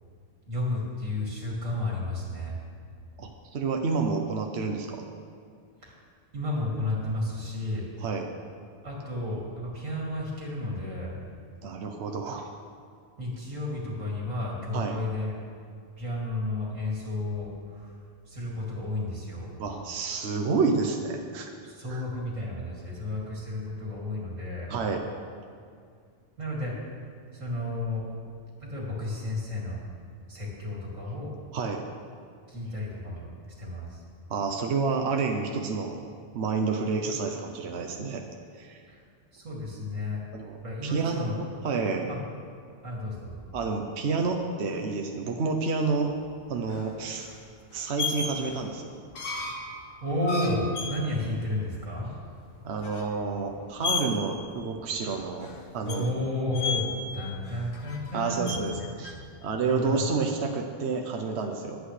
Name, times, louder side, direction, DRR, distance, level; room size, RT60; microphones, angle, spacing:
voice 1, 0.5-2.6 5.8-5.9 6.3-7.8 8.8-11.1 13.2-15.3 16.0-17.9 18.3-19.5 21.6-24.7 26.4-26.7 27.3-28.1 28.6-29.8 30.3-31.3 32.5-33.3 33.6-34.0 39.3-40.2 40.6-41.4 42.1-42.2 42.8-43.4 50.0-52.1 55.8-58.5 59.7-60.0, left 1 dB, 90° right, -4 dB, 2.9 m, -32 dB
voice 2, 3.2-5.0 8.0-8.3 11.6-12.5 14.7-15.0 19.6-21.5 21.9-22.0 24.7-25.0 31.5-31.8 34.3-36.0 36.3-38.2 38.6-38.8 40.3-42.1 43.5-46.1 46.5-47.3 47.7-48.9 52.6-56.1 58.1-59.1 59.4-61.8, right 4 dB, 60° right, 3 dB, 1.0 m, -29 dB
sound 1, 46.0-59.4, left 4 dB, 80° left, 1.5 m, -36 dB
21.0 x 8.3 x 3.3 m, 2.2 s
omnidirectional pair, 1.3 m